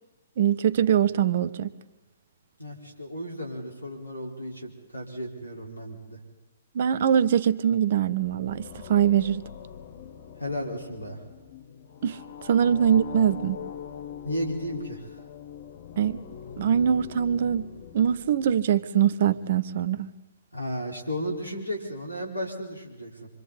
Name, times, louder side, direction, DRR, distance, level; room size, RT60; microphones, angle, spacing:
voice 1, 0.4-1.7 6.7-9.4 12.0-13.6 16.0-16.2 16.6-17.7 17.9-20.1, right 9 dB, 50° right, 0.8 m, -23 dB
voice 2, 2.6-6.2 10.4-11.2 14.2-15.1 20.5-23.3, equal, 85° left, 4.5 m, -34 dB
sound 1, 7.9-19.1, left 8 dB, 45° left, 1.5 m, -43 dB
27.0 x 25.0 x 4.2 m
figure-of-eight pair, 120°, 0 cm